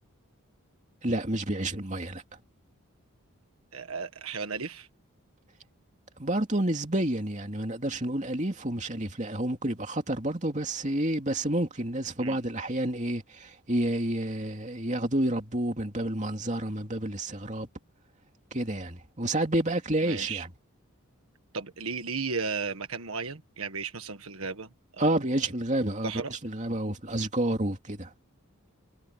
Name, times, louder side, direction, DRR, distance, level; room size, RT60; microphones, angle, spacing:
voice 1, 1.0-2.2 6.2-17.7 18.5-20.5 25.0-28.1, right 1 dB, 35° right, 2.8 m, -29 dB
voice 2, 3.7-4.9 12.2-12.4 20.0-20.4 21.5-24.7 25.0-25.1 26.0-26.3, right 5 dB, 75° right, 1.6 m, -34 dB
head